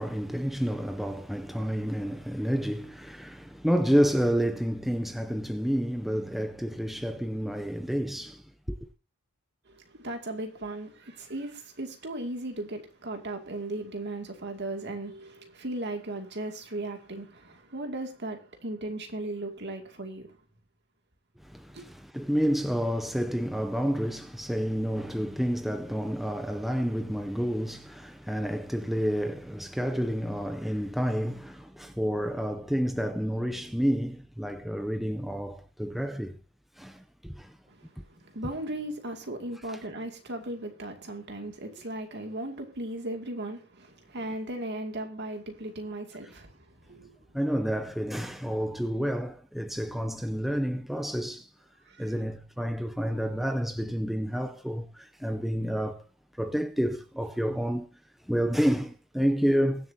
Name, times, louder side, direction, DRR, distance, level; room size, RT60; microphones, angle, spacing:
voice 1, 0.0-8.8 21.4-36.4 36.8-37.6 39.7-39.8 47.3-51.5 52.0-56.0 56.3-59.9, equal, ahead, 0.6 m, -29 dB
voice 2, 9.7-20.4 21.7-21.8 37.7-47.2 51.9-52.1, right 1 dB, 50° right, 2.3 m, -37 dB
22.5 x 7.6 x 2.8 m
head